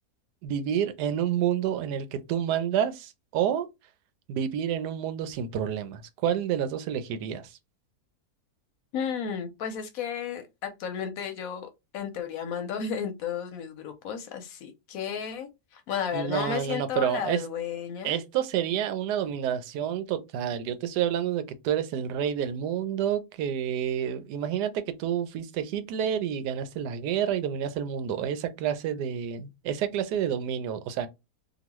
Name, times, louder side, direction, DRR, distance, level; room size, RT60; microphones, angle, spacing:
voice 1, 0.4-3.7 4.3-7.6 16.1-17.4 18.0-31.1, right 9 dB, 90° right, 1.2 m, -29 dB
voice 2, 8.9-18.2, left 7 dB, 70° left, 0.9 m, -33 dB
3.0 x 2.3 x 2.9 m
omnidirectional pair, 1.7 m